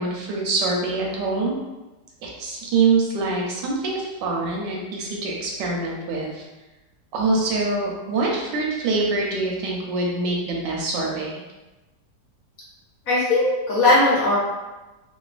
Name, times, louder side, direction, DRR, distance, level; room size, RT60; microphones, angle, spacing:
voice 1, 0.0-1.6 2.2-6.4 7.1-11.4, right 3 dB, 80° right, -2 dB, 1.2 m, -24 dB
voice 2, 13.1-14.4, left 2 dB, 65° left, -7 dB, 0.9 m, -18 dB
3.1 x 2.1 x 2.4 m, 1.1 s
omnidirectional pair, 2.0 m